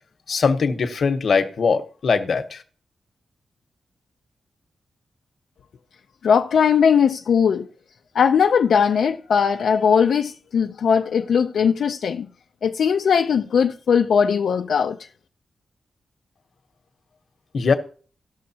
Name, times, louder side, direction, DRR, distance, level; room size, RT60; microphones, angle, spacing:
voice 1, 0.3-2.6 17.5-17.7, left 5 dB, 60° left, 1.0 m, -21 dB
voice 2, 6.2-7.7 8.1-12.3 12.6-15.1, left 7 dB, 80° left, 0.5 m, -19 dB
18.0 x 6.4 x 2.8 m
wide cardioid pair, 135°, 0 cm